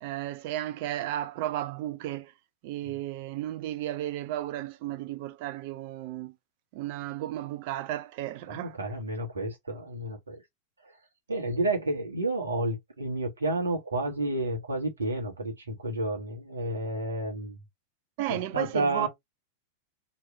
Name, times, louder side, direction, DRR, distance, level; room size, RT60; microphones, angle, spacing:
voice 1, 0.0-2.3 2.6-6.4 6.7-8.7 18.2-19.1, right 13 dB, 45° right, 0.4 m, -34 dB
voice 2, 8.5-10.4 10.8-10.9 11.3-17.6 18.3-19.1, right 2 dB, 75° right, 1.3 m, -31 dB
3.2 x 2.8 x 4.4 m
figure-of-eight pair, 90°, 0 cm